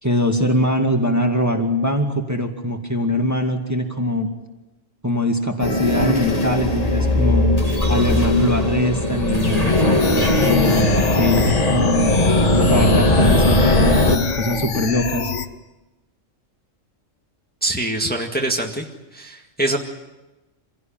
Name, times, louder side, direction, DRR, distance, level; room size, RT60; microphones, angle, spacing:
voice 1, 0.0-4.3 5.0-7.5 7.9-12.1 12.6-15.3, left 1 dB, 10° right, 3 dB, 2.1 m, -22 dB
sound 1, 5.6-14.2, left 1 dB, 30° left, 2.4 m, -18 dB
sound 2, 10.0-15.5, left 6 dB, 65° left, 1.5 m, -27 dB
voice 2, 17.6-19.8, right 1 dB, 5° left, 0 dB, 1.9 m, -24 dB
26.0 x 17.0 x 9.0 m, 1.1 s
omnidirectional pair, 1.4 m